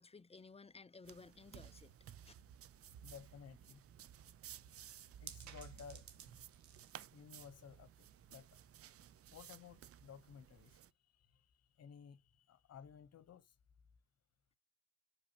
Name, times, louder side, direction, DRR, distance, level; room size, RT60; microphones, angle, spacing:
voice 1, 0.0-1.9 2.2-2.3, left 4 dB, 20° left, 0.6 m, -57 dB
sound 1, 1.0-10.9, right 10 dB, 50° right, 0.6 m, -57 dB
sound 2, 1.4-9.5, right 9 dB, 70° right, 1.3 m, -61 dB
voice 2, 3.0-3.8 5.2-6.1 7.1-8.5 9.3-13.5, left 7 dB, 55° left, 1.1 m, -56 dB
6.4 x 5.0 x 2.9 m
hypercardioid pair, 40°, 30 cm